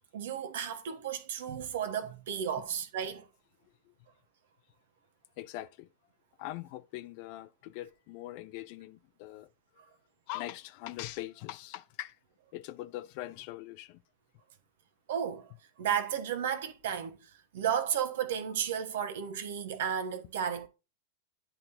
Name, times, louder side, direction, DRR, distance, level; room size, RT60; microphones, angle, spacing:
voice 1, 0.1-3.3 15.1-20.7, right 8 dB, 55° right, 1.2 m, -33 dB
voice 2, 5.4-5.9 6.4-9.5 10.3-12.2 12.5-14.0, left 15 dB, 45° left, 0.5 m, -42 dB
11.0 x 4.0 x 2.7 m
figure-of-eight pair, 90°, 0 cm